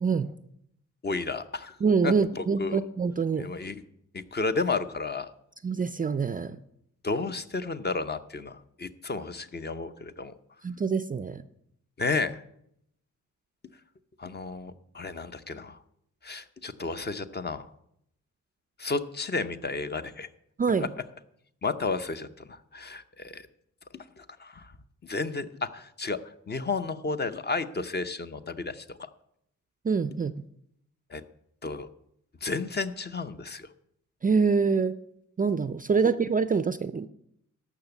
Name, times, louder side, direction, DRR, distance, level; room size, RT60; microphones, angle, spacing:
voice 1, 0.0-0.3 1.8-3.5 5.6-6.6 10.6-11.4 20.6-20.9 29.8-30.3 34.2-35.0 35.4-37.1, right 5 dB, 25° right, 13 dB, 0.4 m, -25 dB
voice 2, 1.0-1.8 2.0-2.8 3.4-3.8 4.1-5.3 7.0-10.3 12.0-12.4 14.2-15.8 16.2-17.7 18.8-20.3 21.6-23.5 24.2-24.7 25.0-26.2 26.5-29.0 31.1-31.2 31.6-31.9 32.4-33.7, left 3 dB, 30° left, 10 dB, 0.7 m, -32 dB
14.0 x 6.0 x 8.0 m, 0.74 s
wide cardioid pair, 140°, 32 cm